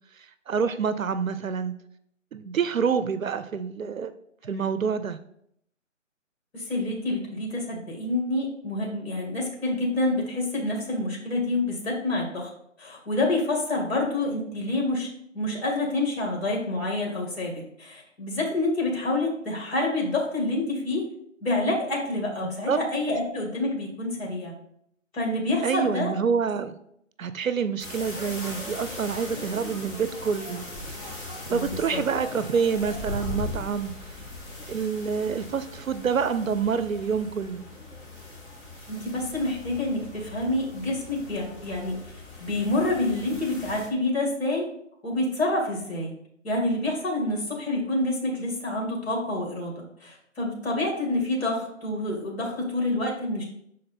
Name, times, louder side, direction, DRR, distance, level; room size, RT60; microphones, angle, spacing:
voice 1, 0.2-1.7 2.3-4.1 4.4-5.2 22.7-22.8 25.6-26.8 27.2-30.6 31.5-34.2 34.7-37.7, right 6 dB, 90° right, 12 dB, 0.6 m, -27 dB
voice 2, 6.5-12.5 12.8-15.1 15.3-21.1 21.4-24.6 25.1-26.2 31.5-32.0 38.9-42.0 42.4-44.7 45.0-46.1 46.4-53.4, left 2 dB, 50° left, -1 dB, 2.0 m, -27 dB
sound 1, 27.8-43.9, left 1 dB, 20° left, 1.8 m, -39 dB
6.4 x 4.1 x 4.2 m, 0.71 s
figure-of-eight pair, 150°, 39 cm